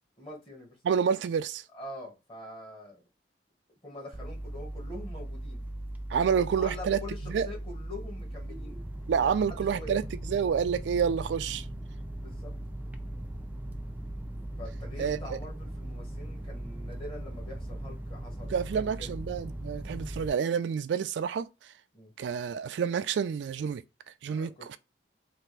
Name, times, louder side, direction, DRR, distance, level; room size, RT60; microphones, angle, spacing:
voice 1, 0.2-0.8 1.7-3.0 3.8-5.6 6.1-8.8 9.2-9.4 9.7-10.0 12.1-12.6 14.6-19.2 21.9-22.1 24.3-24.8, left 1 dB, 30° left, 1.4 m, -45 dB
voice 2, 0.8-1.6 6.1-7.5 9.1-11.7 15.0-15.4 18.5-21.7 22.2-23.8 24.2-24.8, right 7 dB, 80° right, 0.3 m, -29 dB
sound 1, 4.1-20.3, right 1 dB, 10° right, 0.4 m, -39 dB
3.4 x 2.5 x 3.1 m
head